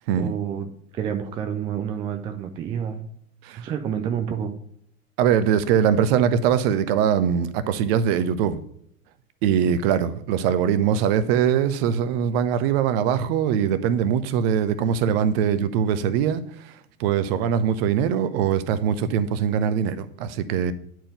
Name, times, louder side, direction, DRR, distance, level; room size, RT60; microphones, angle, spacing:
voice 1, 0.2-3.1 3.6-4.6, right 8 dB, 15° right, 0.3 m, -29 dB
voice 2, 5.2-8.6 9.4-20.7, right 8 dB, 45° right, 0.8 m, -22 dB
10.0 x 4.6 x 5.2 m
figure-of-eight pair, 85°, 42 cm